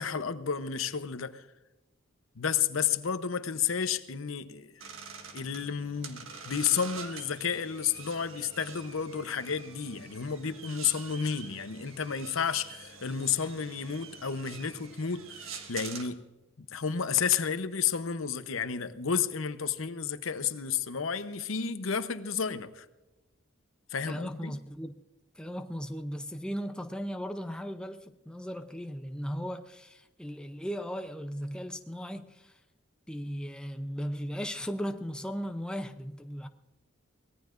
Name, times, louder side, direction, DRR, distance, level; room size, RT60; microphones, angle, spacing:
voice 1, 0.0-1.4 2.4-4.7 5.3-16.3 16.6-22.9 23.9-24.6, left 7 dB, 85° left, 0.8 m, -31 dB
sound 1, 4.8-16.1, right 5 dB, 85° right, 1.6 m, -46 dB
voice 2, 24.1-24.9 25.4-32.6 33.1-36.5, equal, 5° left, 0.6 m, -37 dB
24.0 x 18.0 x 2.6 m
head